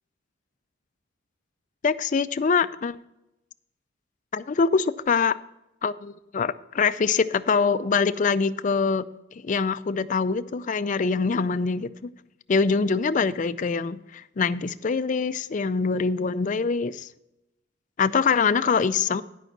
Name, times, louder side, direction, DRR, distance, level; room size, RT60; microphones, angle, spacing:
voice 1, 1.8-3.0 4.3-5.4 5.8-9.1 9.3-12.1 12.5-17.1 18.0-19.2, left 5 dB, 40° left, 0.4 m, -24 dB
11.5 x 5.4 x 6.0 m
head